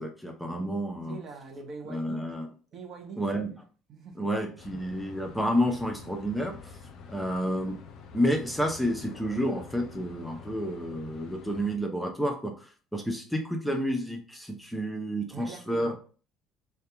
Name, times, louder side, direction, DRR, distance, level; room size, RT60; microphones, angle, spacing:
voice 1, 0.0-1.2 1.9-2.5 3.2-3.5 4.2-6.7 7.1-7.8 8.1-12.7 12.9-16.0, equal, ahead, 0.7 m, -30 dB
voice 2, 1.1-2.3 2.7-3.2 3.9-4.3 15.3-15.9, right 4 dB, 50° right, 0.6 m, -42 dB
sound 1, 4.6-11.8, left 5 dB, 60° left, 0.4 m, -47 dB
2.7 x 2.3 x 3.4 m
hypercardioid pair, 60°, 0 cm